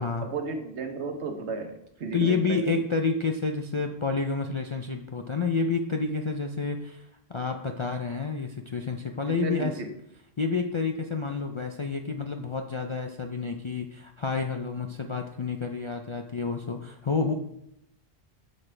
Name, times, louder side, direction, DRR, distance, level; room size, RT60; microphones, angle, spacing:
voice 1, 0.0-2.8 9.3-9.9, right 3 dB, 90° right, 5 dB, 1.2 m, -34 dB
voice 2, 2.1-9.7 10.4-17.3, left 4 dB, 45° left, 4 dB, 0.4 m, -29 dB
8.6 x 6.5 x 3.3 m, 0.79 s
omnidirectional pair, 1.1 m